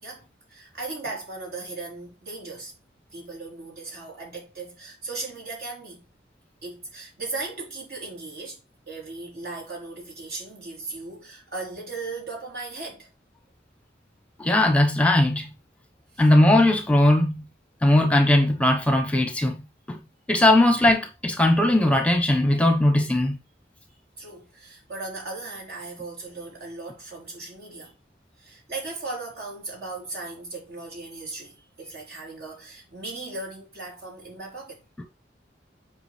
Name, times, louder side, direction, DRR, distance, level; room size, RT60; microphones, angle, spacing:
voice 1, 0.0-2.7 3.1-6.0 6.6-8.6 8.9-13.1 16.1-16.3 24.2-28.0 28.4-34.8, right 3 dB, 65° right, 4.1 m, -37 dB
voice 2, 14.4-15.5 16.2-17.4 17.8-19.6 19.9-20.0 20.3-23.4, left 1 dB, 10° left, 0.9 m, -19 dB
8.1 x 4.9 x 3.4 m
head